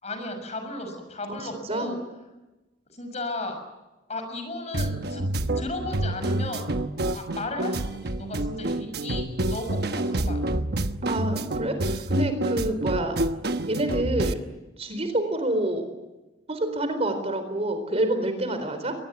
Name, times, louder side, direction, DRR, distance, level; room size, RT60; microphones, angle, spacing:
voice 1, 0.0-2.0 2.9-3.6 4.1-5.2 5.5-6.7 7.1-10.4, left 2 dB, 40° left, 7 dB, 6.4 m, -35 dB
sound 1, 4.7-14.3, right 1 dB, 60° right, 1.1 m, -28 dB
voice 2, 11.0-13.2 13.7-14.4 14.8-15.9 16.5-18.9, right 1 dB, 35° right, 8 dB, 4.1 m, -27 dB
23.5 x 20.0 x 9.5 m, 1.1 s
head